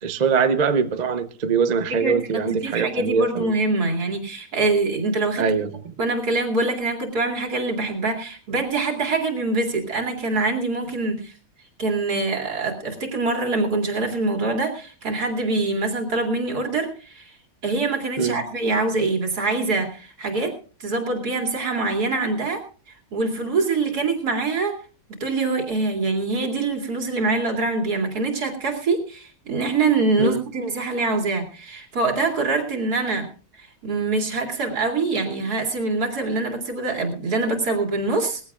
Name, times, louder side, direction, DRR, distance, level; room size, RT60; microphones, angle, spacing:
voice 1, 0.0-3.5 5.4-5.9 18.2-18.4 30.2-30.4, right 6 dB, 40° right, 0.7 m, -22 dB
voice 2, 1.9-5.4 6.0-11.3 11.8-17.4 17.6-20.5 20.8-22.6 23.1-24.8 25.1-33.3 33.6-38.4, right 3 dB, 75° right, 3.1 m, -24 dB
20.5 x 15.5 x 2.4 m
omnidirectional pair, 1.7 m